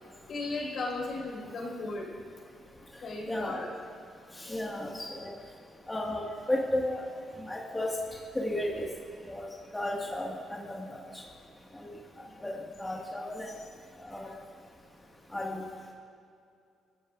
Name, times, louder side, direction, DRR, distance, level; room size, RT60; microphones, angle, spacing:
voice 1, 0.3-2.1 3.0-3.7 12.4-12.5, left 2 dB, 60° left, -1 dB, 4.6 m, -36 dB
voice 2, 3.3-3.6 4.4-5.3 5.9-7.1 7.5-7.9 8.4-8.9 9.3-9.5 9.7-11.0 11.8-11.9 12.4-13.5 14.0-14.3 15.3-15.6, left 1 dB, 10° left, -2 dB, 1.7 m, -33 dB
29.5 x 14.0 x 2.5 m, 2.5 s
cardioid pair, 90°, 0 cm